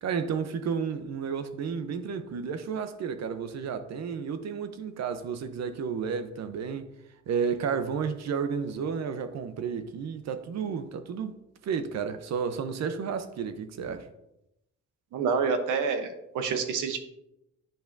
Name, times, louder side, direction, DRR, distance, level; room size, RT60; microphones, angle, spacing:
voice 1, 0.0-6.9 7.3-14.1, right 6 dB, 60° right, 0.7 m, -32 dB
voice 2, 15.1-17.0, right 5 dB, 90° right, 0.9 m, -28 dB
8.8 x 5.6 x 2.6 m
cardioid pair, 90°, 30 cm